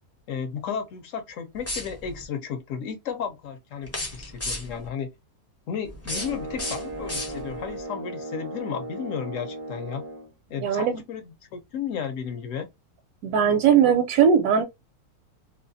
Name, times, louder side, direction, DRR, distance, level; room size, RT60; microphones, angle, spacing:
voice 1, 0.3-5.1 5.7-10.0 10.5-12.7, left 7 dB, 65° left, 0.9 m, -33 dB
sound 1, 1.6-2.2 3.8-4.9 5.8-7.7, left 1 dB, 20° left, 0.4 m, -34 dB
sound 2, 6.1-10.3, right 2 dB, 65° right, 0.5 m, -36 dB
voice 2, 10.6-11.0 13.2-14.6, right 7 dB, 80° right, 1.1 m, -19 dB
2.7 x 2.2 x 2.5 m
omnidirectional pair, 1.6 m